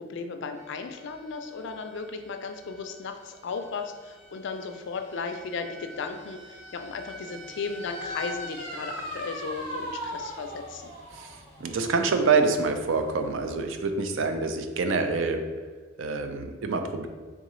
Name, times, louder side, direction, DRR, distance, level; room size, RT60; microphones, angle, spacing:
voice 1, 0.0-10.9, left 4 dB, 60° left, 6 dB, 0.4 m, -35 dB
sound 1, 0.6-13.9, equal, 40° right, 1.3 m, -42 dB
voice 2, 11.1-15.4 16.0-17.1, right 4 dB, 65° right, 6 dB, 0.4 m, -26 dB
3.7 x 3.6 x 3.1 m, 1.5 s
head